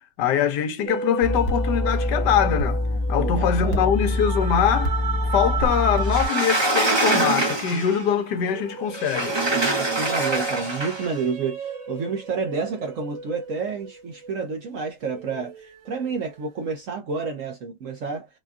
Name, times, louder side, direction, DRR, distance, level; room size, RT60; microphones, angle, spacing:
voice 1, 0.2-2.8 3.1-5.0 5.3-9.4, left 8 dB, 75° left, 1.2 m, -23 dB
sound 1, 0.9-14.6 15.0-16.7, right 5 dB, 90° right, 1.6 m, -34 dB
sound 2, 1.2-6.3, left 1 dB, 55° left, 1.1 m, -25 dB
voice 2, 3.2-3.9 9.5-18.3, right 5 dB, 60° right, 0.9 m, -30 dB
Sliding door, 6.1-8.0 8.9-11.1, right 2 dB, 25° right, 0.6 m, -24 dB
4.3 x 2.3 x 2.4 m
omnidirectional pair, 1.9 m